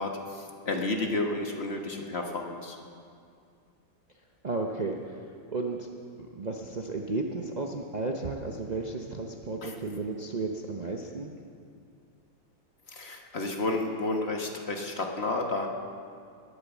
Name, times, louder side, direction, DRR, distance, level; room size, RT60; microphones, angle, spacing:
voice 1, 0.0-2.8 9.6-9.7 12.9-15.7, left 2 dB, 35° left, 2 dB, 1.4 m, -31 dB
voice 2, 4.4-5.2 5.5-5.9 6.2-11.3, right 3 dB, 80° right, 1 dB, 0.3 m, -33 dB
21.0 x 8.8 x 7.2 m, 2.3 s
omnidirectional pair, 2.1 m